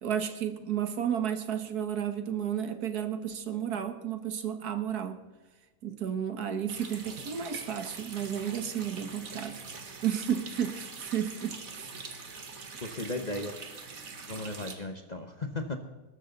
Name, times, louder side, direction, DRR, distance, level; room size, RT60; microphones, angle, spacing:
voice 1, 0.0-5.2 5.8-9.6 10.0-12.0, right 9 dB, 80° right, 8 dB, 1.8 m, -32 dB
Water tap faucet, 6.7-14.7, right 4 dB, 60° right, 2.1 m, -44 dB
voice 2, 12.8-13.6 14.3-15.8, left 2 dB, 30° left, 6 dB, 1.0 m, -35 dB
21.0 x 12.5 x 4.0 m, 1.2 s
omnidirectional pair, 1.6 m